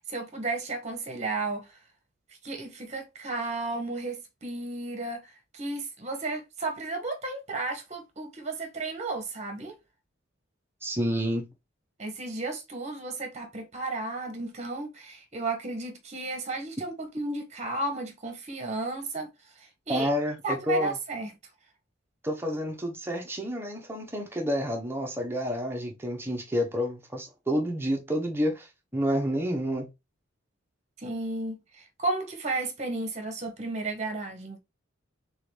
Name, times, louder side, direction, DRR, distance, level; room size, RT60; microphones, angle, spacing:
voice 1, 0.0-1.7 2.4-9.8 12.0-19.3 19.6-20.1 20.4-21.3 31.0-34.6, right 2 dB, 35° right, 1.2 m, -33 dB
voice 2, 10.8-11.4 19.9-21.0 22.2-29.9, equal, 10° right, 1.0 m, -29 dB
3.9 x 3.9 x 3.3 m
head